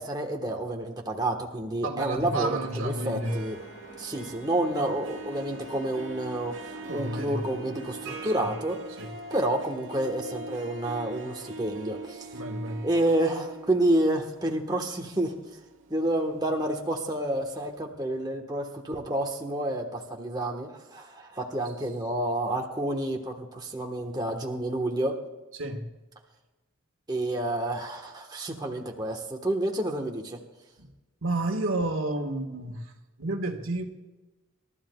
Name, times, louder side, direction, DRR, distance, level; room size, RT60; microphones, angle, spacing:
voice 1, 0.0-3.6 4.0-8.8 9.3-12.3 12.8-15.3 15.9-25.1 27.1-30.4, right 1 dB, 20° right, 1.3 m, -29 dB
voice 2, 1.8-3.4 6.9-7.5 8.3-8.5 9.0-9.1 12.3-12.9 25.5-25.9 30.8-30.9 31.2-32.9 33.2-33.8, right 2 dB, 85° right, 1.6 m, -31 dB
sound 1, 2.2-8.5, right 1 dB, 40° left, 2.0 m, -47 dB
Harp, 3.0-17.0, right 2 dB, 70° right, 1.4 m, -42 dB
27.0 x 13.0 x 2.3 m
head